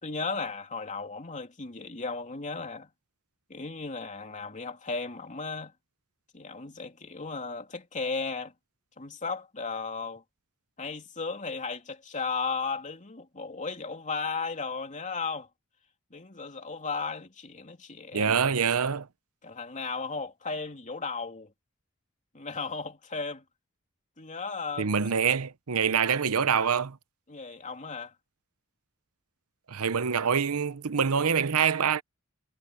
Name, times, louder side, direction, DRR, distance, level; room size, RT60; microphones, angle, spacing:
voice 1, 0.0-2.9 3.5-5.7 6.3-8.5 9.0-10.2 10.8-15.5 16.1-18.4 19.4-21.5 22.3-23.4 24.2-25.1 27.3-28.1, left 4 dB, 35° left, 2.9 m, -35 dB
voice 2, 18.1-19.1 24.8-27.0 29.7-32.0, right 6 dB, 85° right, 0.8 m, -25 dB
head